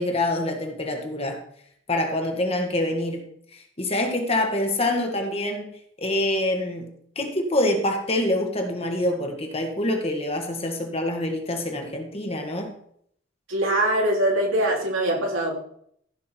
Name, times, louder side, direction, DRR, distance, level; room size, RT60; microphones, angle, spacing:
voice 1, 0.0-1.4 1.9-5.7 6.0-12.7, left 1 dB, 30° left, 3 dB, 1.8 m, -26 dB
voice 2, 13.5-15.6, right 1 dB, 80° right, 0 dB, 3.4 m, -23 dB
15.0 x 6.2 x 4.6 m, 0.65 s
head